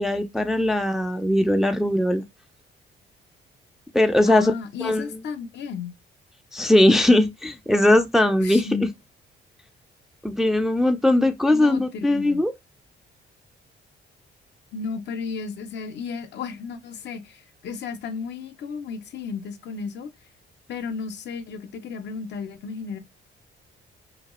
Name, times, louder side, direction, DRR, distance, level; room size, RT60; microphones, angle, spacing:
voice 1, 0.0-2.2 3.9-4.5 4.8-5.1 6.5-8.9 10.2-12.5, left 1 dB, ahead, 0.4 m, -20 dB
voice 2, 4.3-5.9 8.4-8.9 11.5-12.4 14.7-20.1 20.7-23.0, left 5 dB, 65° left, 0.5 m, -33 dB
2.9 x 2.3 x 2.9 m
cardioid pair, 90°, 20 cm